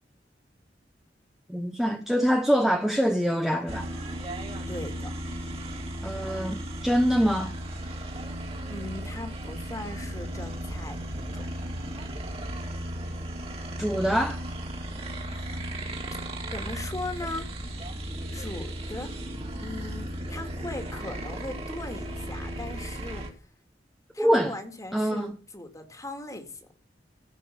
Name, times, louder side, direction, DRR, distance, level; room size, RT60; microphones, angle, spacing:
voice 1, 1.5-3.9 6.0-7.5 13.8-14.4 24.2-24.5 24.9-25.4, equal, ahead, 0.9 m, -24 dB
sound 1, 3.7-23.3, right 1 dB, 35° right, 2.6 m, -35 dB
voice 2, 4.7-5.1 8.7-11.5 15.3-15.7 16.5-17.5 18.3-19.1 19.6-23.2 24.1-26.8, left 2 dB, 20° left, 2.0 m, -39 dB
16.0 x 5.4 x 6.9 m
head